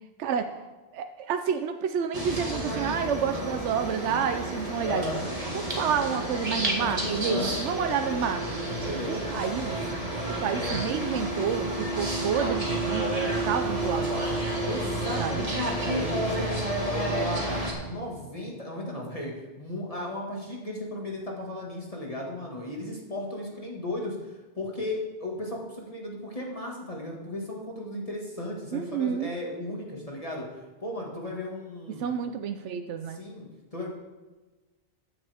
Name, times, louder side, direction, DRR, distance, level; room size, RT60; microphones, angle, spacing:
voice 1, 0.2-5.0 5.5-8.6 9.1-9.8 10.3-14.5 15.2-15.4 28.7-29.3 32.0-33.2, right 7 dB, 80° right, 7 dB, 1.0 m, -29 dB
sound 1, 2.1-17.7, right 1 dB, 30° right, 2.1 m, -30 dB
voice 2, 4.8-5.3 7.3-7.5 8.8-9.4 14.6-16.6 16.9-32.1 33.1-33.9, left 1 dB, 30° left, -2 dB, 1.9 m, -35 dB
14.5 x 9.9 x 3.5 m, 1.2 s
omnidirectional pair, 1.2 m